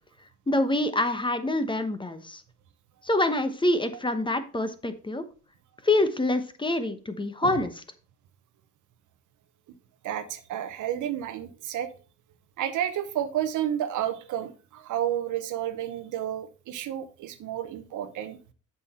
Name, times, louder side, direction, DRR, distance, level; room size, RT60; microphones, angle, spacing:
voice 1, 0.5-2.4 3.0-5.2 5.8-7.7, left 2 dB, 15° left, 9 dB, 1.0 m, -26 dB
voice 2, 10.0-11.9 12.6-18.4, right 11 dB, 80° right, 11 dB, 0.9 m, -31 dB
7.5 x 6.1 x 4.2 m, 0.36 s
cardioid pair, 90°, 30 cm